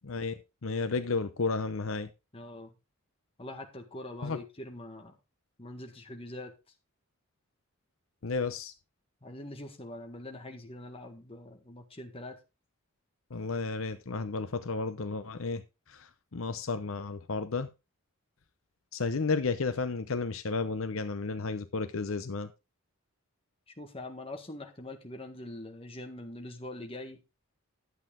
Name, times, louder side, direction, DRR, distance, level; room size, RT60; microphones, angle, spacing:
voice 1, 0.0-0.3 0.6-2.1 4.2-4.4 8.2-8.7 13.3-15.6 15.9-17.7 18.9-22.5, left 4 dB, 70° left, 0.8 m, -32 dB
voice 2, 2.3-2.7 3.4-5.2 5.6-6.5 9.2-12.4 23.7-27.2, left 1 dB, 25° left, 1.7 m, -43 dB
11.5 x 8.0 x 3.7 m
head